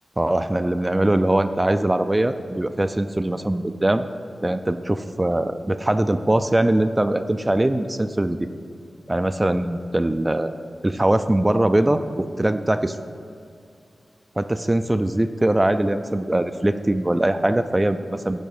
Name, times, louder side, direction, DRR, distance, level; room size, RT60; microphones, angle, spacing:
voice 1, 0.2-4.1 4.4-8.5 9.1-10.5 10.8-13.0 14.4-18.4, right 1 dB, 20° right, 9 dB, 0.3 m, -21 dB
10.0 x 3.6 x 7.0 m, 2.4 s
cardioid pair, 60°, 0 cm